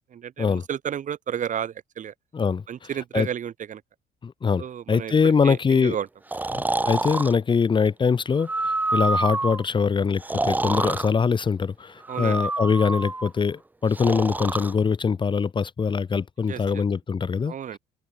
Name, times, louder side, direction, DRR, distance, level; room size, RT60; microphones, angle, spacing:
voice 1, 0.1-2.1 2.7-3.8 4.6-6.1 12.1-12.5 16.5-16.8 17.5-17.8, right 9 dB, 50° right, 2.7 m, -32 dB
voice 2, 4.2-4.6 4.9-6.0 6.5-17.8, left 5 dB, 30° left, 1.2 m, -23 dB
Breathing, 6.3-7.3 8.4-9.6 10.2-11.1 12.0-13.3 13.9-14.7, right 2 dB, 10° right, 0.8 m, -27 dB
open air
cardioid pair, 110°, 17 cm